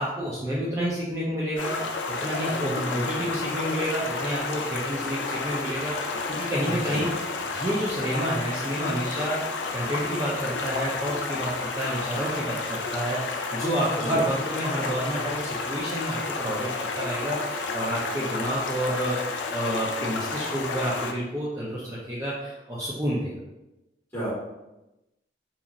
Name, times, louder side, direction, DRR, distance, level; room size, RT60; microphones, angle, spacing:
voice 1, 0.0-1.8 2.1-23.4, right 1 dB, 15° right, -7 dB, 0.4 m, -29 dB
Stream, 1.6-21.1, left 4 dB, 85° left, 0.4 m, -31 dB
voice 2, 2.5-3.4 6.6-7.1 13.9-14.2 24.1-24.3, right 1 dB, 15° left, -11 dB, 1.3 m, -35 dB
2.9 x 2.4 x 2.5 m, 0.97 s
head